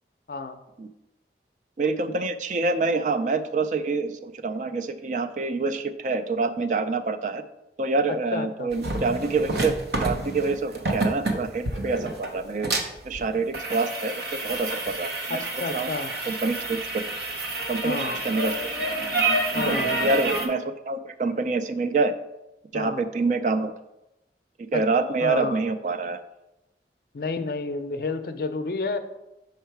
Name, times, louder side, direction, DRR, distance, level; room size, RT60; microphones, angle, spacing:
voice 1, 0.3-0.6 8.1-8.7 15.3-16.1 17.8-18.2 19.5-20.1 22.7-23.0 24.7-24.8 25.2-25.6 27.1-29.0, left 3 dB, 55° left, 10 dB, 0.5 m, -30 dB
voice 2, 1.8-7.4 7.8-9.7 10.0-12.7 13.1-15.4 15.7-15.9 16.3-16.8 17.7-18.0 18.2-18.7 19.7-22.1 22.7-23.7 24.7-26.2, right 3 dB, 45° right, 9 dB, 0.4 m, -26 dB
sound 1, 8.7-20.5, right 2 dB, 70° right, 0.8 m, -28 dB
5.6 x 4.6 x 4.6 m, 0.94 s
head